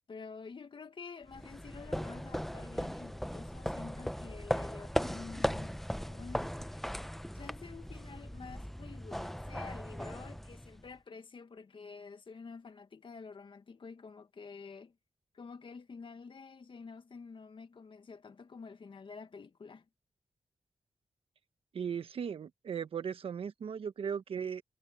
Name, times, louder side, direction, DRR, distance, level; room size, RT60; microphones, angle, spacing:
voice 1, 0.1-6.8 7.3-15.0 15.3-19.9, left 5 dB, 65° left, 1.9 m, -49 dB
sound 1, 1.3-10.9, equal, 5° left, 1.0 m, -38 dB
voice 2, 21.7-24.6, right 7 dB, 80° right, 1.3 m, -37 dB
cardioid pair, 45°, 9 cm